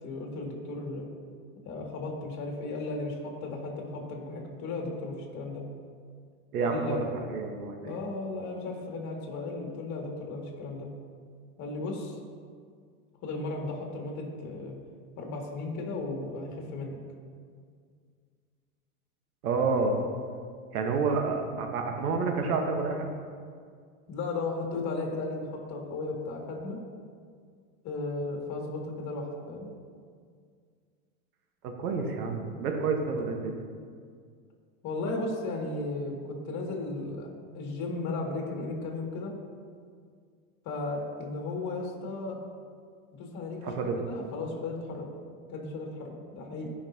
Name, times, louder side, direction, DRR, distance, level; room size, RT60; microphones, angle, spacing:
voice 1, 0.0-1.0 1.7-5.6 6.6-7.1 7.8-10.9 11.6-12.2 13.2-14.8 15.2-17.0 24.1-26.8 27.8-29.7 34.8-37.3 37.5-39.3 40.6-42.4 43.1-45.1 45.5-46.7, left 2 dB, 40° left, 0 dB, 2.2 m, -35 dB
voice 2, 6.5-7.0 7.3-8.0 19.4-20.0 20.7-23.1 31.6-33.6 43.6-44.0, right 4 dB, 90° right, 3 dB, 1.3 m, -29 dB
15.5 x 5.7 x 2.8 m, 2.1 s
supercardioid pair, 120°, 43 cm